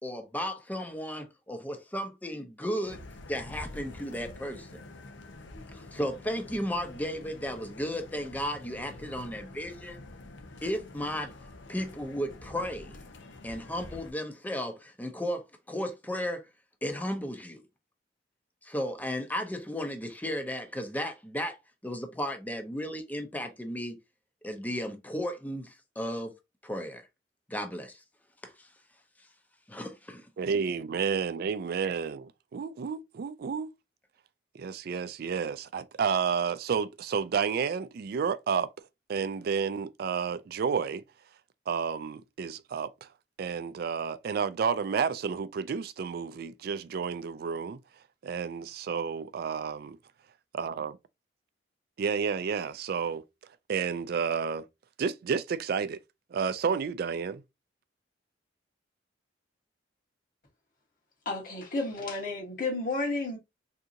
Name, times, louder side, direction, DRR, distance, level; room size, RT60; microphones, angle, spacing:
voice 1, 0.0-3.0 3.3-4.8 5.7-10.0 10.6-11.3 11.7-13.0 13.4-16.5 16.8-17.6 18.6-21.6 21.8-24.0 24.4-26.3 26.6-27.1 27.5-28.0 28.4-28.7 29.7-30.3, equal, 10° left, 0.6 m, -34 dB
sound 1, 2.8-14.1, left 2 dB, 85° left, 0.7 m, -47 dB
voice 2, 30.4-33.7 34.5-38.7 39.1-41.0 41.7-43.1 43.4-47.8 48.2-50.0 50.5-50.9 52.0-53.2 53.7-54.7 55.0-56.0 56.3-57.4, right 6 dB, 55° right, 0.3 m, -31 dB
voice 3, 61.2-63.4, left 2 dB, 50° left, 1.1 m, -32 dB
3.7 x 2.8 x 2.6 m
head